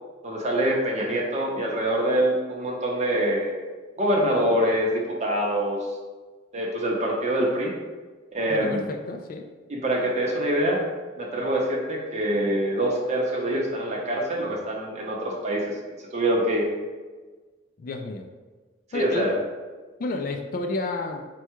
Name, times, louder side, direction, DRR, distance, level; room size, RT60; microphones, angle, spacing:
voice 1, 0.2-3.6 4.0-5.9 6.5-7.7 8.3-8.8 9.7-10.8 11.2-15.7 16.1-16.7 18.9-19.3, right 1 dB, 35° right, -2 dB, 0.7 m, -25 dB
voice 2, 8.5-9.5 17.8-18.3 18.9-19.3 20.0-21.2, left 2 dB, 45° left, 5 dB, 0.3 m, -31 dB
4.5 x 2.3 x 4.4 m, 1.3 s
head